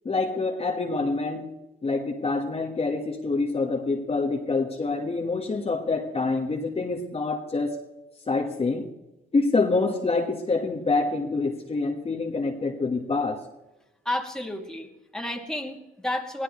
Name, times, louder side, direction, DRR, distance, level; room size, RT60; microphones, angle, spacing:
voice 1, 0.0-1.5 1.8-7.8 8.3-8.9 9.3-13.4, left 3 dB, 30° left, 2 dB, 1.5 m, -26 dB
voice 2, 14.0-16.4, left 1 dB, 5° left, 2 dB, 2.3 m, -31 dB
22.0 x 16.0 x 3.2 m, 1.0 s
cardioid pair, 90°, 20 cm